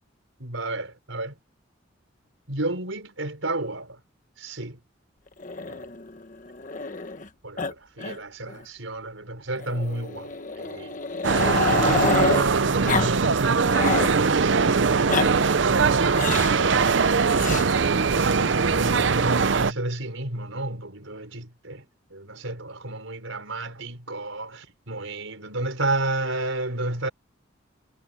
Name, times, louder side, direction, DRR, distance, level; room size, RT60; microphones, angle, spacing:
voice 1, 0.4-1.4 2.5-4.0 4.4-4.8 5.7-5.9 7.4-11.0 11.7-17.0 17.4-21.8 22.1-27.1, right 2 dB, 90° right, 5.0 m, -31 dB
Growling, 5.4-7.3 7.6-7.7 8.0-8.2 8.5-8.6 9.6-12.5 12.9-13.1 13.4-14.1 14.9-15.3 16.1-16.6 17.4-17.7 18.8-19.4, left 4 dB, 40° left, 1.3 m, -28 dB
sound 1, 11.2-19.7, right 5 dB, 70° right, 0.6 m, -21 dB
head